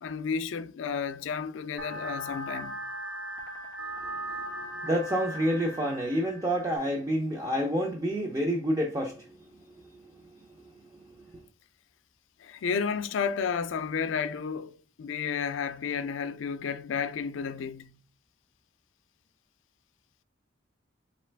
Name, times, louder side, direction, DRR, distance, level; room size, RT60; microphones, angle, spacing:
voice 1, 0.0-2.8 12.4-18.0, left 6 dB, 75° left, 0.4 m, -32 dB
sound 1, 1.8-6.8, right 1 dB, 90° right, 1.4 m, -38 dB
voice 2, 4.6-9.3 9.9-10.0, equal, 15° right, 0.5 m, -28 dB
4.1 x 3.2 x 3.2 m
head